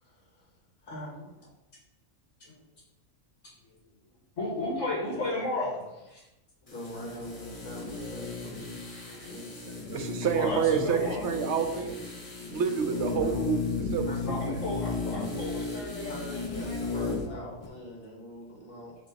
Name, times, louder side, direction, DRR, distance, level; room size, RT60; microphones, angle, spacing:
voice 1, 0.0-1.5 5.0-5.4 5.7-5.8 6.7-8.6 9.2-9.5 13.2-13.5 14.1-14.2 16.1-19.0, equal, 45° left, -1 dB, 1.7 m, -43 dB
voice 2, 4.4-5.7 6.0-6.3 6.6-6.7 8.3-8.4 8.7-9.4 10.3-11.2 14.2-17.6, left 2 dB, 65° left, -3 dB, 1.6 m, -34 dB
sound 1, 6.7-17.3 17.6-17.7, left 4 dB, 30° left, 1.0 m, -35 dB
voice 3, 9.9-12.1 12.5-13.6 13.9-14.6, right 7 dB, 60° right, 6 dB, 1.0 m, -28 dB
6.6 x 3.2 x 5.2 m, 0.97 s
omnidirectional pair, 1.4 m